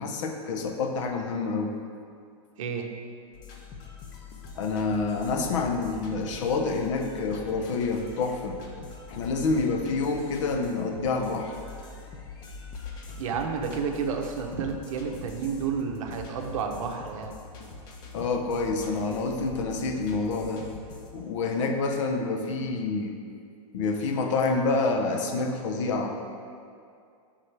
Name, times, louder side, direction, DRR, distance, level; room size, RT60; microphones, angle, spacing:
voice 1, 0.0-1.8 4.6-8.6 9.1-11.5 18.1-20.6 21.1-23.2 23.7-26.1, left 3 dB, 55° left, 4 dB, 0.8 m, -28 dB
voice 2, 2.6-2.9 13.2-17.4, right 6 dB, 60° right, 3 dB, 0.8 m, -31 dB
sound 1, 3.3-21.2, left 4 dB, 20° left, 0.5 m, -43 dB
10.5 x 3.8 x 3.3 m, 2.4 s
supercardioid pair, 170°, 19 cm